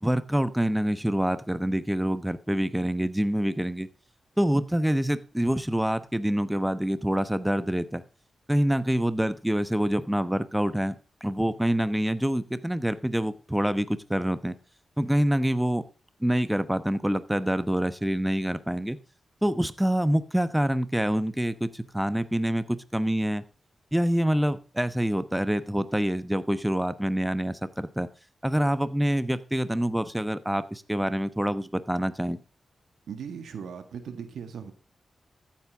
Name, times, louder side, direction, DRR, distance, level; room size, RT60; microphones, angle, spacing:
voice 1, 0.0-3.9 4.4-8.0 8.5-14.6 15.0-15.8 16.2-19.0 19.4-23.4 23.9-28.1 28.4-32.4, equal, 5° right, 12 dB, 1.0 m, -26 dB
voice 2, 33.1-34.7, right 7 dB, 85° right, 8 dB, 1.8 m, -38 dB
14.5 x 8.7 x 3.6 m, 0.34 s
cardioid pair, 60°, 0 cm